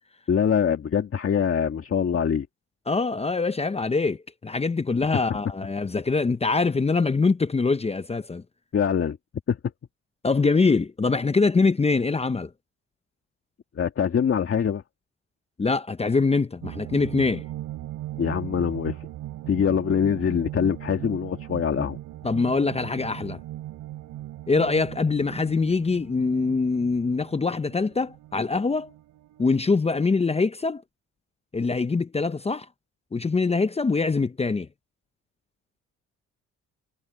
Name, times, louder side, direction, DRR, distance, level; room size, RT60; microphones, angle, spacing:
voice 1, 0.3-2.5 8.7-9.2 9.5-9.6 13.8-14.8 18.2-19.1 19.5-22.0, left 7 dB, 45° left, 2.0 m, -24 dB
voice 2, 2.9-8.4 10.2-12.5 15.6-17.4 22.2-23.4 24.5-28.9 29.4-30.8 31.5-32.7 33.1-34.7, left 4 dB, 20° left, 0.8 m, -24 dB
sound 1, 16.6-29.7, right 14 dB, 90° right, 3.9 m, -39 dB
cardioid pair, 90°, 30 cm